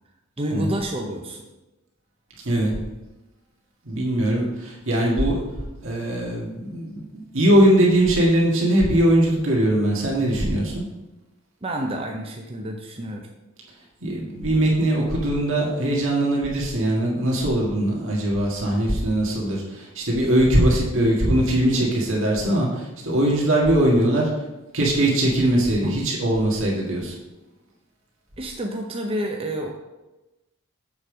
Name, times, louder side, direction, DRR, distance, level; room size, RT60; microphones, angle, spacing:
voice 1, 0.4-1.4 11.6-13.3 25.8-26.0 28.4-29.7, right 1 dB, 25° right, 1 dB, 0.7 m, -29 dB
voice 2, 3.9-5.4 5.8-7.0 7.3-10.8 14.0-24.3 24.7-27.1, right 1 dB, 60° right, -3 dB, 1.9 m, -21 dB
7.1 x 5.2 x 6.2 m, 1.0 s
head